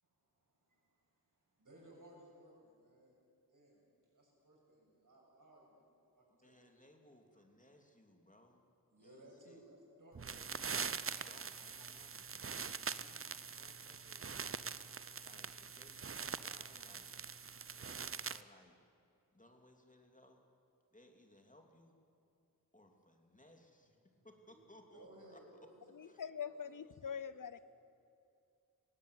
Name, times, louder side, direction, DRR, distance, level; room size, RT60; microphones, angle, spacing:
voice 1, 0.0-3.2 3.5-3.9 4.1-5.7 6.1-6.7 7.3-7.5 8.9-10.8 24.1-24.6 24.9-27.5, right 1 dB, 65° right, -2 dB, 7.5 m, -62 dB
voice 2, 6.3-8.6 9.0-9.6 10.3-10.7 11.1-12.3 12.8-14.3 15.2-17.2 17.6-18.8 19.3-20.4 20.9-22.0 22.7-24.0 24.2-25.6 26.0-26.2, left 1 dB, 20° left, 3 dB, 2.8 m, -64 dB
sound 1, 10.1-18.4, right 5 dB, 40° right, 0.7 m, -43 dB
voice 3, 26.0-27.6, left 7 dB, 65° left, 16 dB, 0.7 m, -44 dB
19.5 x 16.0 x 9.6 m, 2.5 s
cardioid pair, 40°, 34 cm